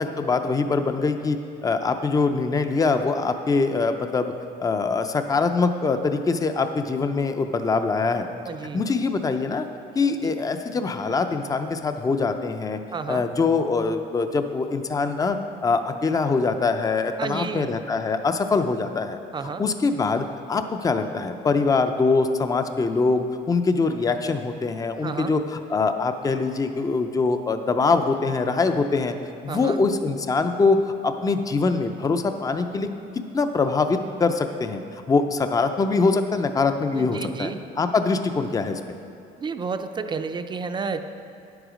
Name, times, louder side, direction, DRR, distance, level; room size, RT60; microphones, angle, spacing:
voice 1, 0.0-4.3 4.6-8.3 8.7-9.7 10.0-12.8 13.1-15.4 15.6-19.2 19.6-29.1 29.4-30.8 31.0-32.9 33.3-34.8 35.1-37.5 37.8-38.8, left 4 dB, 20° left, 8 dB, 0.5 m, -23 dB
voice 2, 8.4-8.8 10.2-10.3 12.9-13.2 17.2-17.7 19.3-19.6 25.0-25.3 29.5-29.8 36.9-37.6 39.4-41.0, right 5 dB, 25° right, 8 dB, 0.5 m, -31 dB
9.7 x 8.0 x 5.0 m, 2.5 s
cardioid pair, 110°, 17 cm